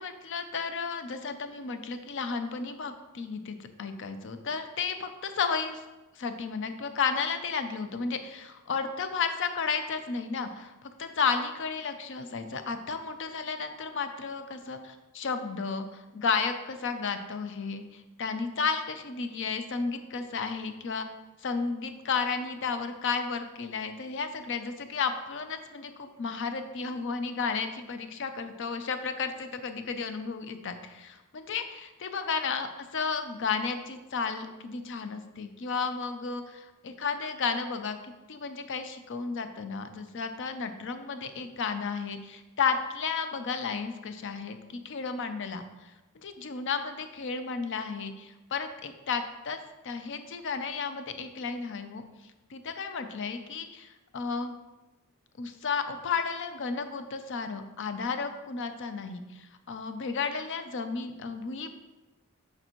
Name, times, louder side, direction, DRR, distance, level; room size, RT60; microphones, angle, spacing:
voice 1, 0.0-5.8 6.2-15.9 16.1-21.1 21.4-38.0 38.3-45.9 46.2-49.6 49.8-52.0 52.5-54.5 55.4-61.7, left 5 dB, 60° left, 8 dB, 0.5 m, -33 dB
6.6 x 5.4 x 3.0 m, 1.1 s
head